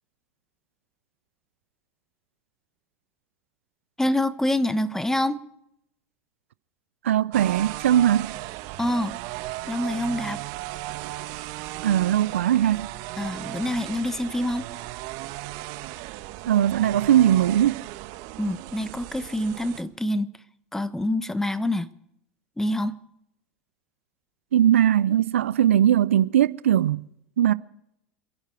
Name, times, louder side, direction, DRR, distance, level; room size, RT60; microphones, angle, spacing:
voice 1, 4.0-5.4 8.8-9.2 9.7-10.4 13.2-14.7 18.4-20.3 20.7-21.9 22.6-23.0, left 1 dB, 5° left, 1.2 m, -26 dB
voice 2, 7.0-8.3 11.8-12.9 16.5-17.9 24.5-27.1 27.4-27.5, right 11 dB, 80° right, 0.5 m, -20 dB
sound 1, 7.3-19.8, right 17 dB, 55° right, 1.3 m, -36 dB
27.5 x 11.5 x 4.6 m
hypercardioid pair, 85°, 7 cm